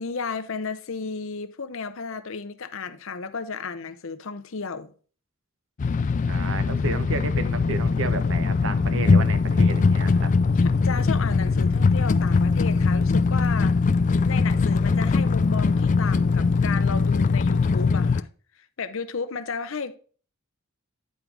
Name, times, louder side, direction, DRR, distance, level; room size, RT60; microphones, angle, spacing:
voice 1, 0.0-4.9 10.5-13.7 14.2-18.3 18.6-20.0, left 5 dB, 65° left, 0.7 m, -33 dB
sound 1, 5.8-18.2, left 4 dB, 35° left, 0.3 m, -21 dB
voice 2, 6.3-10.3, right 3 dB, 60° right, 0.9 m, -32 dB
9.5 x 4.7 x 3.8 m
head